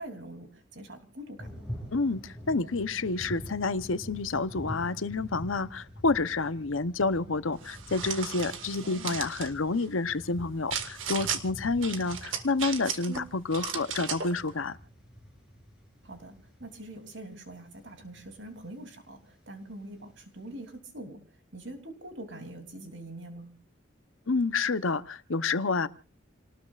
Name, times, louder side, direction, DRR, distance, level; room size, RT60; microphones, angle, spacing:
voice 1, 0.0-1.6 8.8-9.2 13.1-13.3 16.0-21.2 21.5-23.5, right 1 dB, 65° right, 6 dB, 3.1 m, -44 dB
sound 1, 1.4-20.7, equal, 5° right, 7.5 m, -46 dB
voice 2, 1.9-14.8 24.3-25.9, left 3 dB, 85° left, 14 dB, 0.9 m, -29 dB
sound 2, 7.6-9.5 10.7-11.4 11.8-13.2 13.5-14.3, right 8 dB, 80° right, 1.8 m, -35 dB
29.0 x 19.0 x 2.5 m, 0.35 s
head